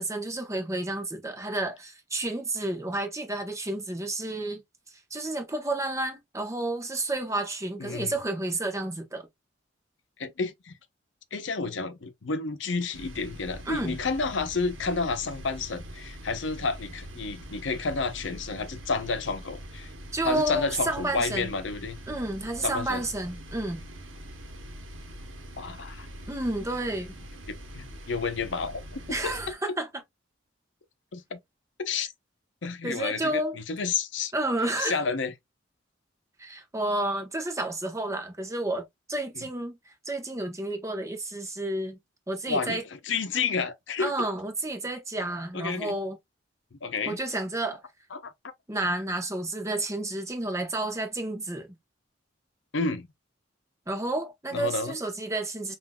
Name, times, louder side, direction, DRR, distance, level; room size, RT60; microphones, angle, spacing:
voice 1, 0.0-4.6 5.1-9.3 13.7-13.9 20.1-21.5 22.1-23.8 26.3-27.2 29.1-29.9 32.8-33.6 34.3-35.0 36.4-39.8 40.0-42.0 42.3-42.8 44.0-46.2 47.1-47.8 48.7-51.7 53.9-55.8, right 2 dB, 15° right, 0.8 m, -31 dB
voice 2, 7.8-8.1 10.2-10.8 11.3-19.9 20.2-22.0 22.6-23.0 25.6-26.1 27.5-29.3 31.1-31.4 31.8-32.1 32.6-34.3 34.8-35.3 39.4-39.5 42.5-44.1 45.5-45.9 46.8-47.2 48.1-48.3 52.7-53.1 54.5-54.9, left 4 dB, 70° left, 0.7 m, -30 dB
sound 1, 12.9-29.5, equal, 80° right, 1.0 m, -43 dB
5.7 x 2.5 x 2.2 m
head